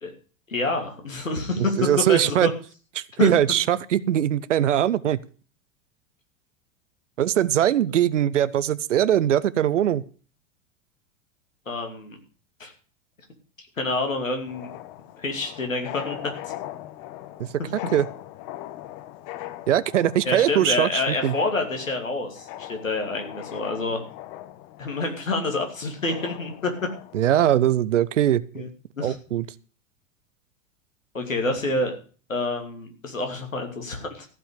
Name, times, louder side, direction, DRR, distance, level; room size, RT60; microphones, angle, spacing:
voice 1, 0.5-2.5 3.2-3.3 11.7-12.2 12.6-12.7 13.8-14.7 15.2-16.3 17.6-17.7 20.2-24.0 24.8-26.7 28.5-28.7 28.9-29.1 31.1-31.9 32.3-34.3, left 2 dB, 80° left, 4 dB, 2.8 m, -27 dB
voice 2, 1.6-2.5 3.0-5.2 7.2-10.0 17.4-17.5 17.9-18.0 19.7-21.4 27.1-28.7 29.0-29.5, right 11 dB, 65° right, 20 dB, 0.8 m, -21 dB
sound 1, 14.5-27.5, left 14 dB, 40° left, 1.2 m, -40 dB
14.5 x 5.7 x 8.2 m, 0.39 s
figure-of-eight pair, 90°, 39 cm